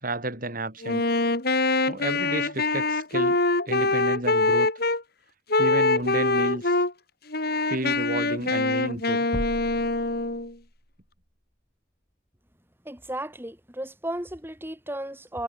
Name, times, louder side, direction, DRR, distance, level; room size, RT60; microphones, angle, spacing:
voice 1, 0.0-1.1 1.9-3.4 3.7-4.7 5.6-6.8 7.7-9.3, right 1 dB, 45° right, 5.8 m, -31 dB
Wind instrument woodwind instrument, 0.8-5.0 5.5-6.9 7.3-10.5, left 2 dB, 55° left, 4.2 m, -24 dB
sound 1, 9.3-10.9, equal, 20° left, 6.5 m, -37 dB
voice 2, 12.9-15.4, right 1 dB, 10° right, 5.4 m, -34 dB
head